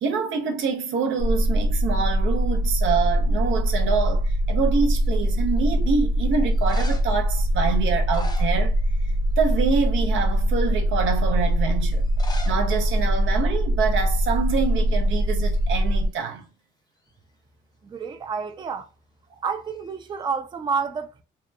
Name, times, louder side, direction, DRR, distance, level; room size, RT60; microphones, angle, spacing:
voice 1, 0.0-8.7 9.4-12.0 12.5-16.4, right 5 dB, 80° right, 0.7 m, -26 dB
sound 1, 1.2-16.1, equal, 75° left, 0.9 m, -22 dB
sound 2, 5.0-5.5 6.4-7.2 7.9-9.1 9.4-9.8 10.4-10.5 12.0-12.6 12.9-13.0 13.2-13.3 14.1-14.3 14.5-15.7 19.7-20.3, left 2 dB, 20° left, 0.6 m, -42 dB
voice 2, 17.8-18.9 19.4-21.2, right 5 dB, 25° right, 0.4 m, -29 dB
2.9 x 2.1 x 2.2 m
cardioid pair, 90°, 20 cm